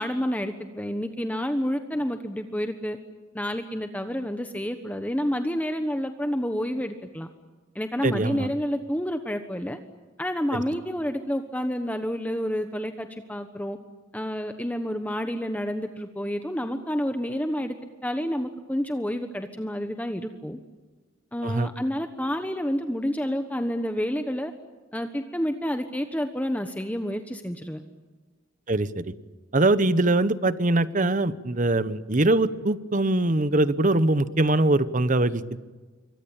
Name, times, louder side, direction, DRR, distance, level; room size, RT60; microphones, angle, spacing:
voice 1, 0.0-3.0 3.3-7.3 7.7-9.8 10.2-13.8 14.1-17.7 18.0-20.6 21.3-24.5 24.9-27.8, equal, 10° left, 7 dB, 1.2 m, -29 dB
voice 2, 8.0-8.5 10.5-10.6 21.4-21.7 28.7-29.1 29.5-35.6, right 2 dB, 40° right, 14 dB, 1.0 m, -22 dB
27.0 x 24.0 x 8.9 m, 1.3 s
head